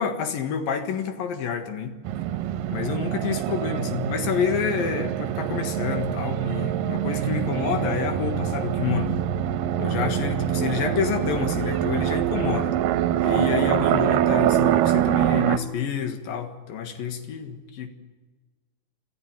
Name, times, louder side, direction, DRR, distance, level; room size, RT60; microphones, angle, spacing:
voice 1, 0.0-2.0 2.7-9.1 9.8-12.8 13.2-17.9, left 7 dB, 75° left, 6 dB, 3.3 m, -28 dB
sound 1, 2.1-15.6, right 11 dB, 75° right, 2.3 m, -24 dB
26.0 x 14.0 x 9.0 m, 1.3 s
omnidirectional pair, 4.2 m